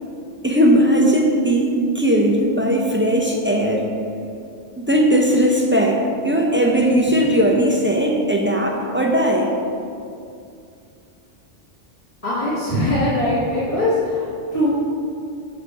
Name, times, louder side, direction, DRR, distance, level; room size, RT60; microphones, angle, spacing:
voice 1, 0.4-3.9 4.8-9.5, equal, 15° right, 0 dB, 0.5 m, -18 dB
voice 2, 12.2-14.7, left 1 dB, 30° left, -11 dB, 1.5 m, -21 dB
6.2 x 5.1 x 5.9 m, 2.5 s
omnidirectional pair, 1.2 m